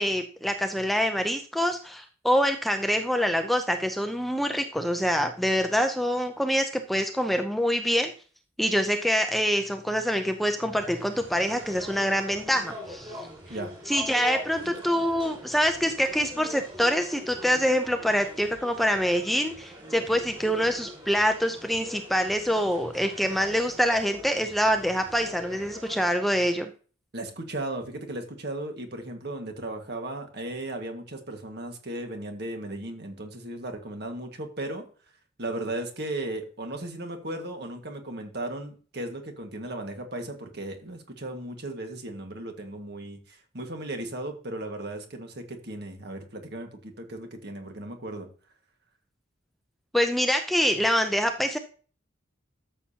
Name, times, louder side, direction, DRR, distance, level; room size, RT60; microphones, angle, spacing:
voice 1, 0.0-8.1 8.6-13.3 13.9-26.7 49.9-51.6, equal, ahead, 6 dB, 0.5 m, -25 dB
sound 1, 10.7-26.1, equal, 25° right, 5.5 m, -43 dB
voice 2, 27.1-34.8 35.4-48.3, right 1 dB, 55° right, 4 dB, 1.7 m, -36 dB
13.0 x 6.9 x 2.8 m, 0.39 s
head